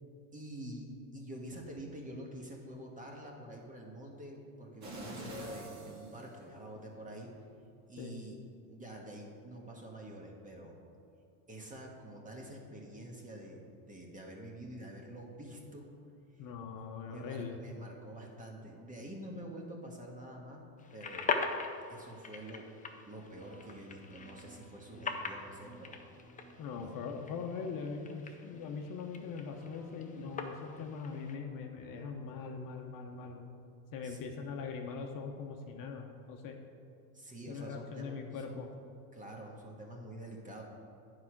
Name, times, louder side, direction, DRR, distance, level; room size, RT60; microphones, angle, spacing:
voice 1, 0.3-7.3 7.9-8.4 8.7-10.7 11.5-15.9 16.3-16.5 17.0-20.6 20.9-21.4 21.9-22.7 23.1-26.0 26.7-27.0 34.0-34.2 37.1-38.6 39.1-40.6, right 1 dB, 15° right, 0 dB, 1.5 m, -47 dB
sound 1, 4.8-6.9 7.4-7.5, right 1 dB, 35° right, 2.1 m, -45 dB
voice 2, 16.4-17.6 26.6-33.5 33.9-36.6 37.5-38.7, left 5 dB, 45° left, 3 dB, 0.9 m, -41 dB
sound 2, 20.8-31.4, left 4 dB, 15° left, 0.6 m, -42 dB
sound 3, 23.2-33.3, right 2 dB, 75° right, 2.3 m, -59 dB
9.6 x 4.9 x 6.0 m, 2.5 s
supercardioid pair, 110°, 47 cm